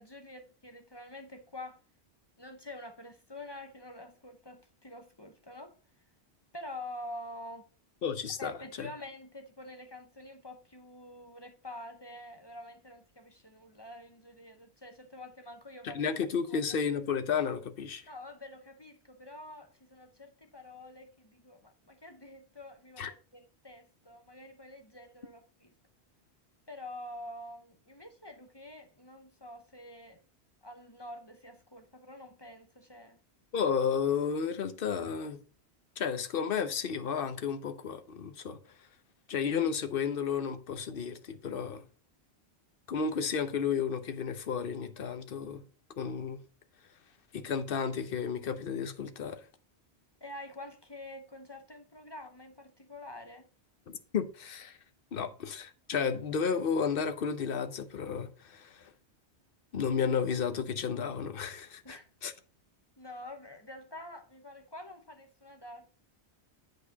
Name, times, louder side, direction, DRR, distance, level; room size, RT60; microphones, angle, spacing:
voice 1, 0.0-1.8 2.4-5.7 6.5-7.7 8.4-16.1 16.5-16.6 18.1-25.7 26.7-30.2 30.6-33.2 50.2-53.5 61.8-62.1 63.0-65.9, left 1 dB, 25° left, 0.8 m, -47 dB
voice 2, 8.0-8.5 8.8-8.9 15.8-18.0 23.0-23.1 33.5-35.4 36.0-38.6 39.3-41.8 42.9-45.6 46.0-46.4 47.3-49.4 53.9-54.8 55.1-58.7 59.7-62.0 62.2-62.3, left 6 dB, 55° left, 1.0 m, -32 dB
8.4 x 5.3 x 4.0 m
omnidirectional pair, 1.1 m